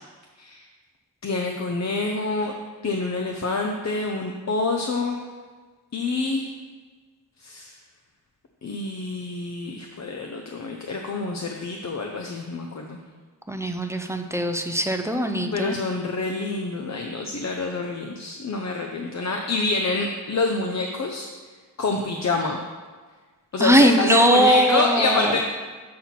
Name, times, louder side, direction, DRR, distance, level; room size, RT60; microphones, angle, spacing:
voice 1, 1.2-2.5 2.8-5.2 5.9-6.4 7.4-7.7 8.6-13.0 15.2-21.3 21.8-22.6 23.5-25.4, left 3 dB, 40° left, 2 dB, 0.6 m, -26 dB
voice 2, 13.5-15.7 23.6-25.4, equal, 5° right, 5 dB, 0.4 m, -20 dB
7.5 x 4.2 x 5.8 m, 1.4 s
wide cardioid pair, 110°, 42 cm